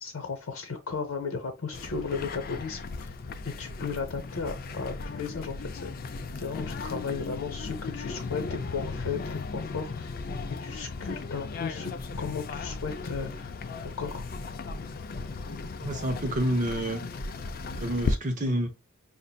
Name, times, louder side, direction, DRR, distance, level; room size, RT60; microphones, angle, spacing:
voice 1, 0.0-3.1 3.6-5.9 6.3-10.1 10.6-11.9 12.2-13.5 13.8-14.3, left 5 dB, 80° left, 0.8 m, -35 dB
sound 1, 1.7-18.2, left 3 dB, 45° left, 0.4 m, -36 dB
voice 2, 15.8-17.0 17.8-18.7, right 1 dB, 35° right, 0.8 m, -28 dB
5.4 x 2.5 x 2.2 m
head